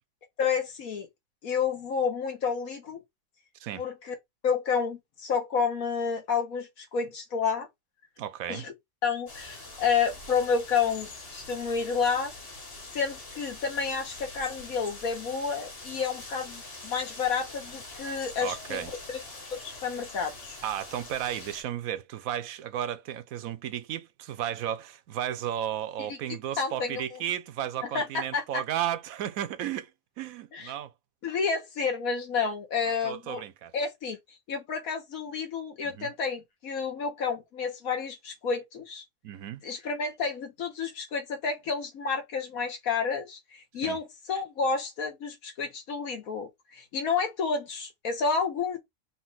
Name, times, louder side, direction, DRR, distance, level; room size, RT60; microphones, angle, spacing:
voice 1, 0.4-1.1 1.4-3.0 3.8-4.1 4.4-7.7 8.5-8.7 9.0-12.3 12.9-19.2 19.5-20.6 26.6-27.2 27.9-28.6 30.5-30.7 31.2-33.4 33.7-34.2 34.5-39.0 39.6-48.8, left 5 dB, 80° left, 1.6 m, -30 dB
voice 2, 8.2-8.7 18.4-18.9 20.6-29.9 30.2-30.9 33.0-33.7 35.8-36.1 39.2-39.6 43.8-44.0, right 11 dB, 80° right, 1.0 m, -34 dB
sound 1, 9.3-21.6, left 2 dB, 45° left, 1.8 m, -44 dB
4.1 x 2.5 x 3.9 m
omnidirectional pair, 1.5 m